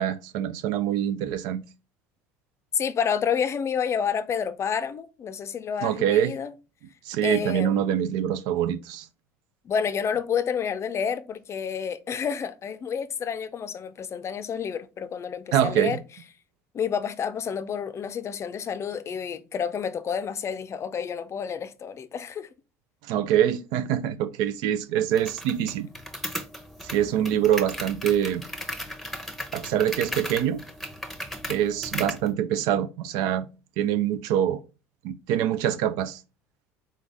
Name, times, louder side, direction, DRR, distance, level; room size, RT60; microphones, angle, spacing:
voice 1, 0.0-1.6 5.8-6.3 7.1-9.1 15.5-16.0 23.0-25.9 26.9-28.4 29.5-30.6 31.5-33.5 33.8-34.6 35.0-36.2, right 10 dB, 65° right, 0.5 m, -25 dB
voice 2, 2.7-6.5 7.2-7.8 9.6-16.0 16.7-22.5, left 7 dB, 35° left, 0.5 m, -29 dB
sound 1, 25.2-32.3, equal, ahead, 0.8 m, -36 dB
3.9 x 3.8 x 3.4 m
hypercardioid pair, 70°, 8 cm